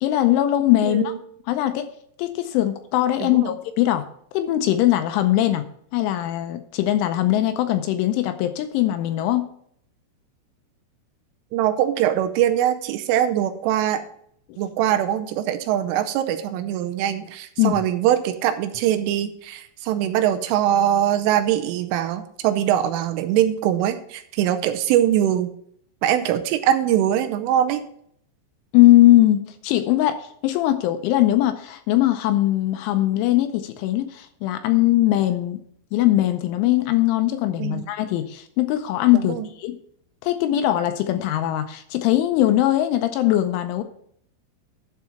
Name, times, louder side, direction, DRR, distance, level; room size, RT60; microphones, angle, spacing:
voice 1, 0.0-1.1 1.5-1.9 2.2-4.1 4.3-5.7 5.9-9.5 17.6-17.8 28.7-30.2 30.4-35.6 35.9-39.8 40.2-43.8, left 14 dB, 80° left, 8 dB, 2.9 m, -20 dB
voice 2, 0.8-1.2 3.2-3.5 11.5-14.0 14.6-25.5 26.0-27.8 37.6-37.8 39.1-39.5, right 11 dB, 85° right, 8 dB, 3.1 m, -22 dB
11.5 x 4.8 x 5.8 m, 0.65 s
omnidirectional pair, 5.8 m